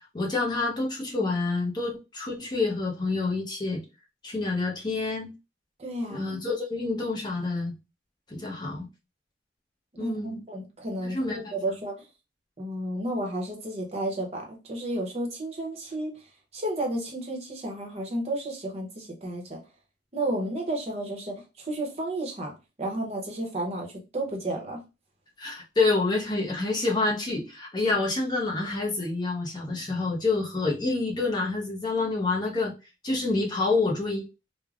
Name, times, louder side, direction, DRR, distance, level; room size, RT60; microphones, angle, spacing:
voice 1, 0.1-3.8 4.2-5.3 6.1-7.7 8.3-8.9 10.0-10.4 11.0-11.8 25.4-32.7 33.0-34.2, left 3 dB, 20° left, -1 dB, 0.7 m, -28 dB
voice 2, 5.8-6.3 10.0-11.9 12.6-16.1 16.5-19.6 20.1-24.8, right 1 dB, 35° right, 1 dB, 0.8 m, -32 dB
3.2 x 2.1 x 2.4 m, 0.27 s
head